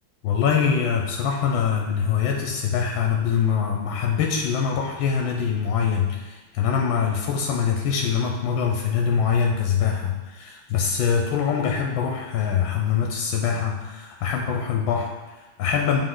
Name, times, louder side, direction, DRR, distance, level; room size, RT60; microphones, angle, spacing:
voice 1, 0.2-16.0, left 7 dB, 80° left, 1 dB, 1.4 m, -24 dB
8.3 x 4.6 x 3.8 m, 1.2 s
omnidirectional pair, 2.2 m